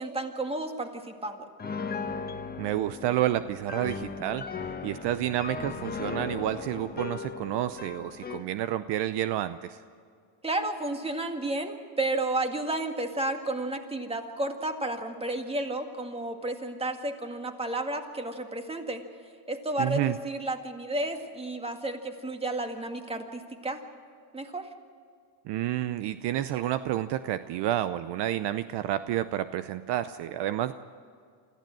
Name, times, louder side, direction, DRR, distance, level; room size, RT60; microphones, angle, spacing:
voice 1, 0.0-1.5 10.4-19.0 19.5-23.8 24.3-24.7, right 2 dB, 10° right, 5 dB, 1.9 m, -32 dB
Piano, 1.6-8.5, left 5 dB, 20° left, 1.2 m, -37 dB
voice 2, 2.6-4.4 4.8-9.8 19.8-20.2 25.5-30.7, right 13 dB, 60° right, 13 dB, 0.7 m, -29 dB
25.0 x 15.0 x 7.7 m, 2.2 s
cardioid pair, 115°, 48 cm